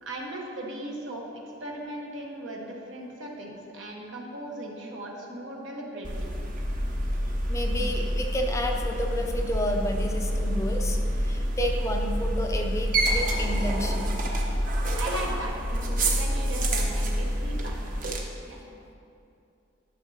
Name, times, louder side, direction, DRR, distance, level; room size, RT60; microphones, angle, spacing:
voice 1, 0.0-6.4 15.0-17.8 18.5-18.7, right 1 dB, 70° right, -1 dB, 1.3 m, -38 dB
sound 1, 6.0-18.2, equal, 45° right, 0.9 m, -27 dB
voice 2, 7.5-14.1, equal, 15° left, 2 dB, 0.5 m, -31 dB
12.0 x 6.6 x 2.8 m, 2.6 s
head